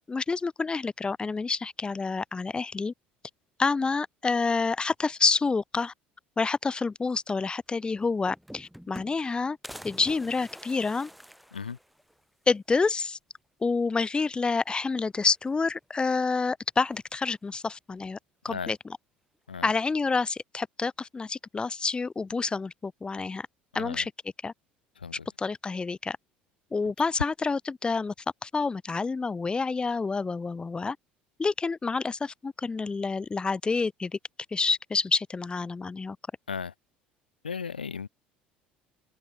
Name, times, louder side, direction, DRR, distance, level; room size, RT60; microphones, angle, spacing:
voice 1, 0.0-2.9 3.6-5.9 6.4-9.6 9.8-11.1 12.5-13.2 13.6-18.2 18.4-18.8 19.6-23.5 23.7-24.1 24.4-24.5 25.4-26.2 26.7-28.1 28.4-31.0 31.4-34.2 34.5-36.2, left 4 dB, 20° left, 0.8 m, -28 dB
sound 1, 7.7-7.8 8.0-9.3 9.6-12.2 12.7-12.8 13.0-13.1 14.3-14.7 15.1-15.8 16.9-17.5, equal, ahead, 2.5 m, -47 dB
voice 2, 23.7-24.1 25.0-25.3 36.5-36.7 37.4-38.1, left 6 dB, 80° left, 0.7 m, -36 dB
figure-of-eight pair, 60°, 5 cm